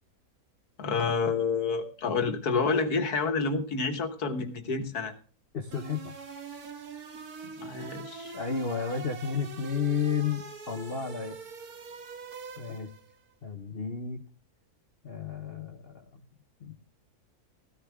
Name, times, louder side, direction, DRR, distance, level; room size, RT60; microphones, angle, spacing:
voice 1, 0.8-5.1 7.4-8.4, left 4 dB, 75° left, 8 dB, 1.9 m, -29 dB
voice 2, 5.5-6.1 8.3-11.4 12.6-12.9 13.4-14.2 15.0-16.2 16.6-16.7, left 6 dB, 40° left, 5 dB, 1.1 m, -32 dB
sound 1, 5.7-13.1, right 4 dB, 70° right, 2.0 m, -43 dB
15.0 x 13.0 x 3.5 m, 0.40 s
omnidirectional pair, 1.7 m